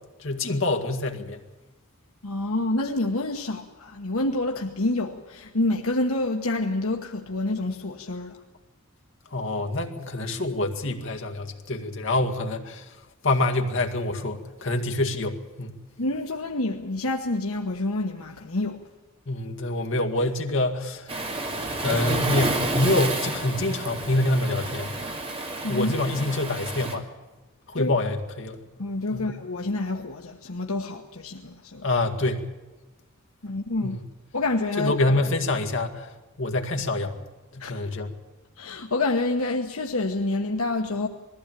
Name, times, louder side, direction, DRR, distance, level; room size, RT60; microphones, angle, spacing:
voice 1, 0.2-1.4 9.3-12.9 13.2-15.8 19.3-25.0 25.7-27.1 27.7-28.6 29.1-29.3 31.8-32.5 33.8-34.0 34.8-36.1 36.4-38.2, left 2 dB, 60° left, 2.0 m, -26 dB
voice 2, 2.2-8.4 16.0-18.8 25.6-25.9 27.8-27.9 28.8-31.9 33.4-34.0 34.3-34.9 37.6-37.8 38.6-41.1, left 2 dB, 80° left, 1.3 m, -27 dB
Waves surf, 21.1-27.0, right 2 dB, 25° right, 2.4 m, -30 dB
20.5 x 15.0 x 9.1 m
head